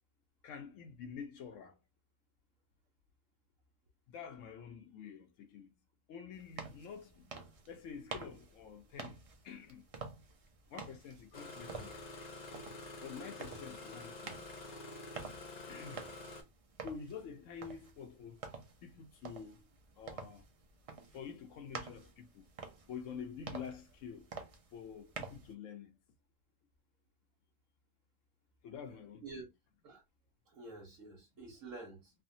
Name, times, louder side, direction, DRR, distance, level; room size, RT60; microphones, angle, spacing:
voice 1, 0.4-1.8 4.1-5.7 6.1-7.3 7.7-9.8 10.7-12.1 13.0-14.4 15.7-16.1 16.8-18.4 18.8-19.7 20.0-20.4 21.1-22.5 22.9-24.3 24.7-26.0 28.6-29.2, left 7 dB, 80° left, 0.9 m, -48 dB
sound 1, 6.3-25.5, right 4 dB, 50° right, 0.4 m, -50 dB
Engine starting, 11.3-16.4, left 2 dB, 40° left, 0.7 m, -48 dB
voice 2, 30.5-32.1, right 3 dB, 80° right, 1.4 m, -49 dB
3.3 x 2.1 x 2.6 m
omnidirectional pair, 1.3 m